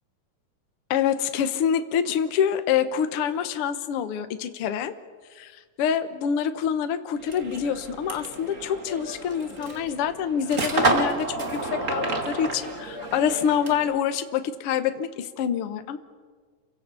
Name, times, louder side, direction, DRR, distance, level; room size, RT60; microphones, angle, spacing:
voice 1, 0.9-4.9 5.4-5.5 5.8-16.0, left 8 dB, 55° left, 9 dB, 1.8 m, -26 dB
sound 1, 7.2-14.0, right 2 dB, 25° right, 2.1 m, -30 dB
29.5 x 24.5 x 7.0 m, 1.5 s
omnidirectional pair, 3.7 m